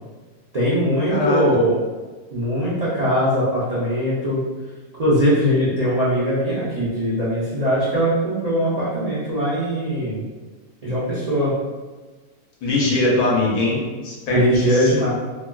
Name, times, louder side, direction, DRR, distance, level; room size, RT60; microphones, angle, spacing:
voice 1, 0.5-1.8 2.3-4.4 5.0-10.2 10.8-11.5 14.3-15.1, equal, 60° right, -9 dB, 0.4 m, -20 dB
voice 2, 1.1-1.4 12.6-15.1, left 2 dB, 75° left, -4 dB, 1.3 m, -22 dB
3.2 x 2.4 x 2.2 m, 1.3 s
omnidirectional pair, 1.6 m